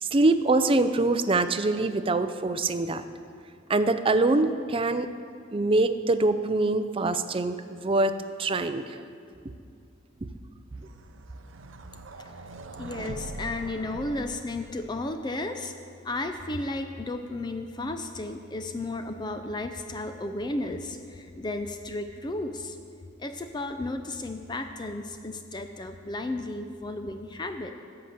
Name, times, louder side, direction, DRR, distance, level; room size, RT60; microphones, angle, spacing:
voice 1, 0.0-3.0 3.7-5.1 5.5-9.0, right 2 dB, 30° right, 11 dB, 0.5 m, -24 dB
sound 1, 10.2-15.1, right 2 dB, 80° right, 0.7 m, -42 dB
voice 2, 12.8-15.7 16.0-22.8 23.2-27.7, left 2 dB, 20° left, 7 dB, 0.5 m, -33 dB
13.5 x 5.8 x 7.9 m, 2.3 s
head